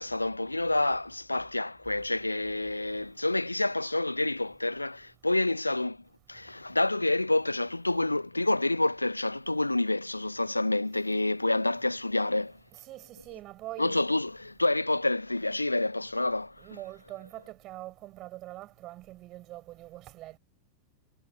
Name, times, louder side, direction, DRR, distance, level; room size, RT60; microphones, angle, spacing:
voice 1, 0.0-6.0 6.3-12.6 13.8-16.8, left 2 dB, 85° left, 1.2 m, -28 dB
voice 2, 12.9-13.9 16.6-20.4, right 16 dB, 35° right, 5.7 m, -43 dB
figure-of-eight pair, 90°, 0 cm